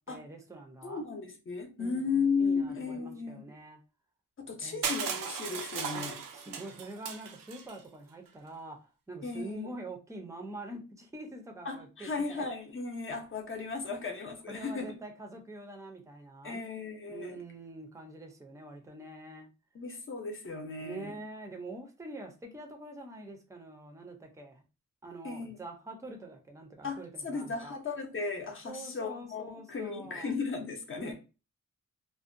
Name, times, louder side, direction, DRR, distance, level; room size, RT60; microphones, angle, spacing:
voice 1, 0.0-1.1 1.8-3.8 4.6-4.9 5.9-12.4 14.5-16.6 17.1-19.5 20.8-24.6 25.0-27.8 28.6-30.3 31.0-31.1, right 2 dB, 10° right, 0.5 m, -45 dB
voice 2, 0.8-3.4 4.4-6.2 9.2-9.8 11.7-14.9 16.4-17.4 19.7-21.2 25.2-25.6 26.8-31.1, left 4 dB, 40° left, 0.6 m, -35 dB
Crushing, 4.8-7.8, right 6 dB, 85° right, 0.5 m, -37 dB
2.5 x 2.1 x 2.5 m
wide cardioid pair, 105°, 32 cm